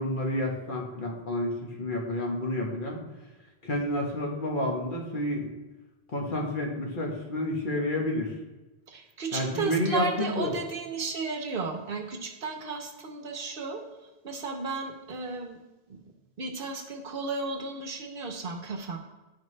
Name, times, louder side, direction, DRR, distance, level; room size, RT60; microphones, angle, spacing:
voice 1, 0.0-3.0 3.6-5.5 6.1-8.3 9.3-10.5, left 1 dB, 55° left, 0 dB, 1.2 m, -30 dB
voice 2, 8.9-13.8 14.2-15.6 15.9-16.0 16.4-19.0, right 4 dB, 65° right, 4 dB, 0.9 m, -34 dB
10.5 x 4.3 x 3.2 m, 1.1 s
omnidirectional pair, 1.1 m